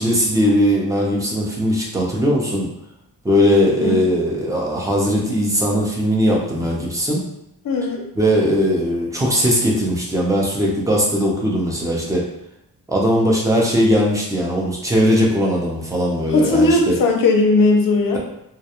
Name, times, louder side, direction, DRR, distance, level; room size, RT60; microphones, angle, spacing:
voice 1, 0.0-2.7 3.2-7.3 8.2-12.3 12.9-16.9, equal, 10° right, -3 dB, 0.4 m, -19 dB
voice 2, 7.6-8.0 16.3-18.2, left 2 dB, 55° left, 1 dB, 0.5 m, -17 dB
2.4 x 2.2 x 2.8 m, 0.81 s
wide cardioid pair, 175°, 40 cm